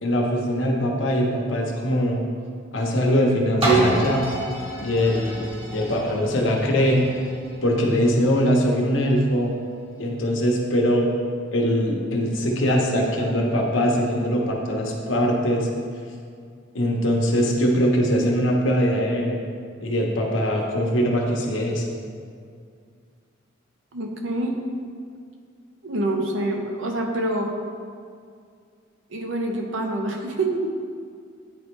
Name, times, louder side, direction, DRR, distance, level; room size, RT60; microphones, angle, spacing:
voice 1, 0.0-2.2 2.7-4.3 4.8-5.4 5.7-7.0 7.6-9.5 10.0-11.0 11.5-15.7 16.7-19.4 19.8-21.8, equal, 80° left, 0 dB, 1.0 m, -22 dB
sound 1, 3.6-9.3 9.9-10.0, right 2 dB, 30° right, 1.4 m, -28 dB
voice 2, 23.9-24.6 25.8-27.5 29.1-30.7, right 1 dB, 85° right, 2 dB, 0.8 m, -26 dB
9.2 x 4.3 x 3.2 m, 2.2 s
head